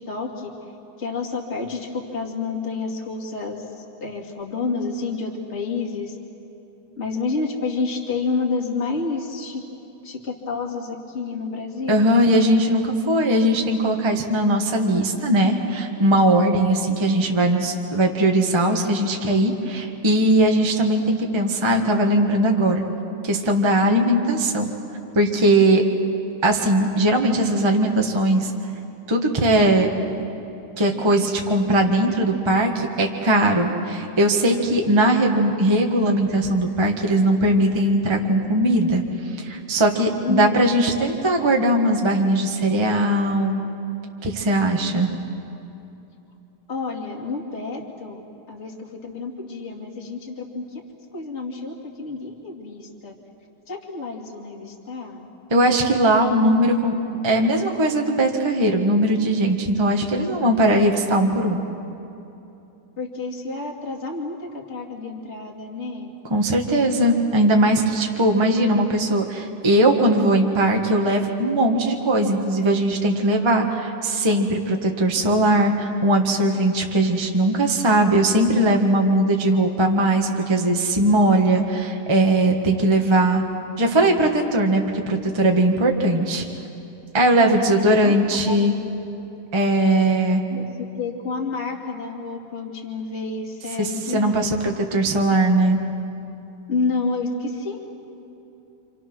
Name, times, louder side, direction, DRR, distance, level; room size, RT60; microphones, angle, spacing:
voice 1, 0.1-0.5 1.0-6.2 7.0-9.6 10.0-12.1 40.2-40.7 46.7-48.2 48.5-50.8 51.1-53.1 53.7-55.3 63.0-66.1 87.6-88.8 90.5-90.7 91.0-94.6 96.7-97.8, left 4 dB, 25° left, -1 dB, 2.4 m, -29 dB
voice 2, 11.9-22.8 23.2-24.7 25.1-25.8 26.4-28.5 29.1-29.9 30.8-39.0 39.4-43.6 44.2-45.1 55.5-57.0 57.2-61.6 66.3-83.4 83.8-86.4 87.1-88.7 89.5-90.4 93.8-95.8, right 1 dB, 35° right, 2 dB, 0.4 m, -19 dB
29.0 x 27.0 x 6.2 m, 2.9 s
omnidirectional pair, 3.6 m